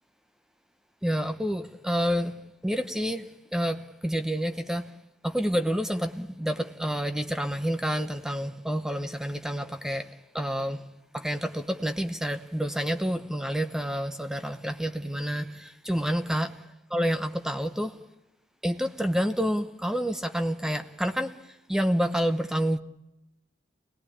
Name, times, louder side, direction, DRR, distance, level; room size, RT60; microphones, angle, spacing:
voice 1, 1.0-2.4 2.6-4.8 5.2-10.9 11.1-16.6 16.9-18.0 18.6-21.4 21.7-22.8, equal, 5° right, 0.9 m, -28 dB
27.0 x 19.0 x 8.7 m
head